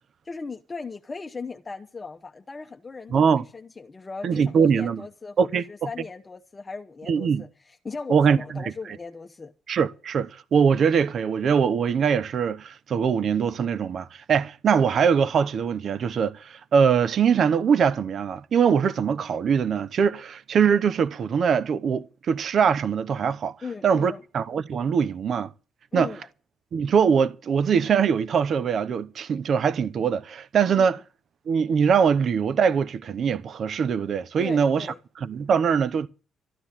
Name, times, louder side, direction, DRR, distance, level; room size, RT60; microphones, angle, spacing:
voice 1, 0.2-9.5 23.6-24.2 25.9-26.3 30.7-30.9 34.4-35.0, left 4 dB, 25° left, 1.0 m, -38 dB
voice 2, 3.1-3.4 4.2-5.0 5.4-5.6 7.1-7.4 8.1-8.6 9.7-23.5 23.8-25.5 25.9-26.1 26.7-31.0 31.5-34.9 35.2-36.1, right 6 dB, 60° right, 0.9 m, -22 dB
13.5 x 9.9 x 7.4 m
cardioid pair, 90°, 0 cm